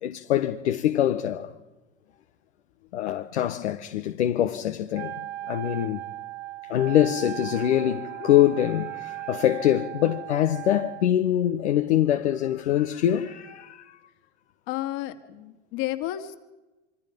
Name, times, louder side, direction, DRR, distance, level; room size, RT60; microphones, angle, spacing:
voice 1, 0.0-1.5 2.9-5.1 5.5-6.0 6.6-13.9, left 11 dB, 75° left, 1.3 m, -24 dB
Wind instrument woodwind instrument, 4.9-11.1, right 16 dB, 70° right, 1.1 m, -37 dB
voice 2, 14.7-16.4, left 14 dB, 55° left, 2.6 m, -32 dB
26.0 x 25.0 x 5.4 m
hypercardioid pair, 95°, 34 cm